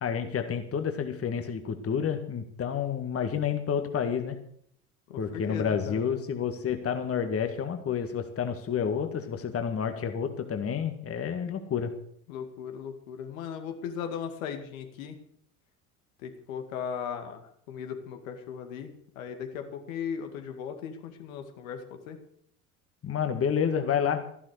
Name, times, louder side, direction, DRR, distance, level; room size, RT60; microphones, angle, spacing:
voice 1, 0.0-4.4 5.2-11.9 23.0-24.2, left 7 dB, 30° left, 7 dB, 1.9 m, -29 dB
voice 2, 5.1-6.0 12.3-15.2 16.2-18.9 19.2-22.2, left 7 dB, 65° left, 5 dB, 2.2 m, -37 dB
14.5 x 11.5 x 6.5 m, 0.67 s
figure-of-eight pair, 60°, 43 cm